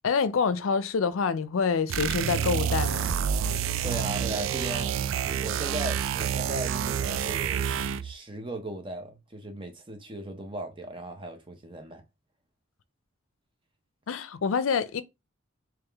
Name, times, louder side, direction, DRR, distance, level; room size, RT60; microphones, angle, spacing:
voice 1, 0.0-3.2 14.1-15.0, left 5 dB, 75° left, 0.5 m, -26 dB
sound 1, 1.9-8.1, right 8 dB, 70° right, 0.3 m, -28 dB
voice 2, 3.5-4.9 5.2-7.7 8.0-12.0, right 1 dB, 25° right, 0.8 m, -37 dB
3.5 x 3.0 x 3.4 m
head